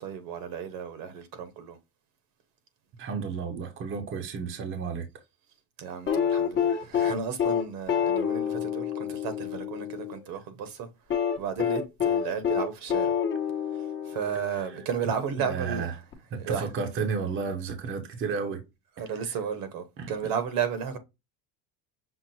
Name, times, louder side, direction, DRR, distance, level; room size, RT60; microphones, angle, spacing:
voice 1, 0.0-1.8 5.8-13.1 13.7-15.9 16.3-16.7 19.0-21.0, right 7 dB, 65° right, 1.2 m, -34 dB
voice 2, 3.0-5.1 15.4-15.9 16.3-18.6 20.0-20.1, right 5 dB, 35° right, 0.8 m, -32 dB
sound 1, 6.1-10.2 11.1-14.7 16.1-16.2, left 8 dB, 30° left, 0.9 m, -27 dB
6.0 x 2.0 x 4.2 m
cardioid pair, 140°, 37 cm